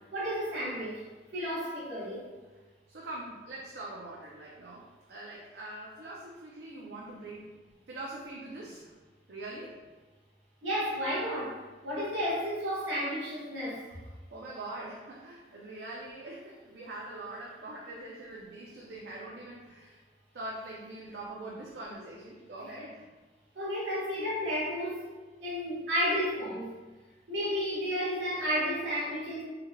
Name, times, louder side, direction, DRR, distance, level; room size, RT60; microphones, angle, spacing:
voice 1, 0.1-1.0 1.3-2.3 10.6-11.6 11.8-13.8 23.5-25.0 25.4-26.7 27.3-29.4, equal, 90° right, -9 dB, 1.3 m, -32 dB
voice 2, 2.9-7.5 7.9-8.9 9.3-9.8 13.9-20.0 20.3-23.1, right 2 dB, 60° right, -4 dB, 0.5 m, -43 dB
3.4 x 3.2 x 2.2 m, 1.3 s
head